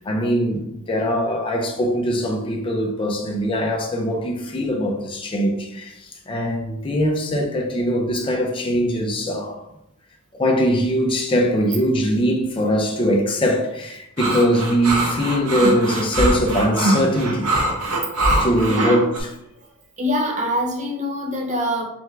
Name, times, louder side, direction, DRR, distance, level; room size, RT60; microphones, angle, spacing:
voice 1, 0.0-9.6 10.3-17.5 18.4-19.3, equal, 25° left, 0.5 m, -21 dB
sound 1, 14.2-19.2, right 1 dB, 75° right, 0.8 m, -22 dB
voice 2, 18.6-19.1 20.0-21.8, equal, 35° right, 0.8 m, -24 dB
3.4 x 3.4 x 3.2 m
head